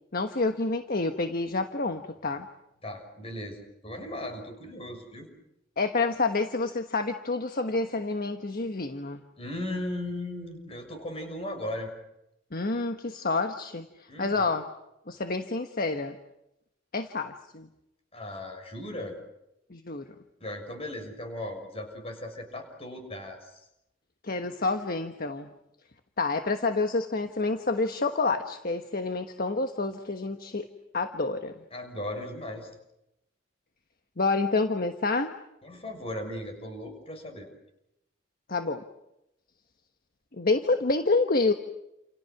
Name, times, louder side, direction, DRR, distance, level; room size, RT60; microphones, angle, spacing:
voice 1, 0.1-2.5 5.8-9.2 12.5-14.7 15.1-16.2 16.9-17.7 19.7-20.1 24.2-25.5 26.2-30.7 30.9-31.5 34.2-35.3 38.5-38.8 40.3-41.5, left 3 dB, 50° left, 7 dB, 1.3 m, -28 dB
voice 2, 2.8-5.3 9.4-11.9 14.1-14.5 18.1-19.2 20.4-23.5 31.7-32.7 35.6-37.5, left 1 dB, 30° left, 5 dB, 6.4 m, -37 dB
29.5 x 28.5 x 6.0 m, 0.86 s
head